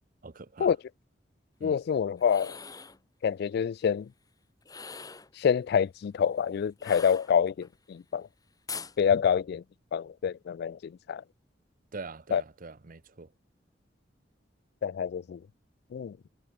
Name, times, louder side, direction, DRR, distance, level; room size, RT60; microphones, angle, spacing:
voice 1, 0.2-0.7 1.6-1.8 11.9-13.3, right 3 dB, 50° right, 0.8 m, -43 dB
voice 2, 1.6-2.6 3.2-4.1 5.4-8.3 9.0-9.6 9.9-11.2 12.3-12.4 14.8-15.4 15.9-16.2, left 7 dB, 60° left, 0.3 m, -27 dB
sound 1, 2.2-3.0 4.6-5.3 6.8-7.7 8.7-9.0, left 5 dB, 20° left, 1.2 m, -42 dB
head